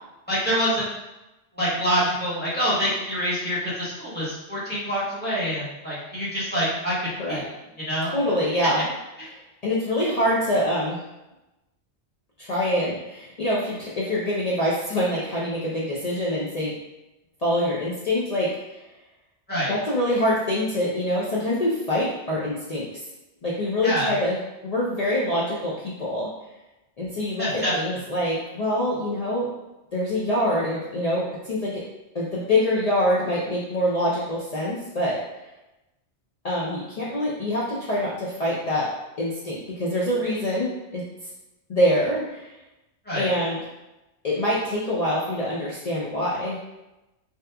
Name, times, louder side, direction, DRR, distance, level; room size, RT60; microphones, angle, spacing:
voice 1, 0.3-0.9 1.6-7.4 7.8-8.1 19.5-19.8 23.8-24.1 27.4-27.7 43.1-43.3, equal, 10° left, -10 dB, 0.9 m, -26 dB
voice 2, 8.0-8.8 9.3-11.0 12.4-16.7 17.4-18.8 19.7-22.9 23.4-26.3 27.0-29.5 29.9-31.8 32.1-35.2 36.4-38.9 39.2-41.0 41.7-42.5 43.2-43.6 44.2-46.6, left 1 dB, 60° left, -7 dB, 0.4 m, -25 dB
2.7 x 2.3 x 2.2 m, 0.98 s
omnidirectional pair, 1.2 m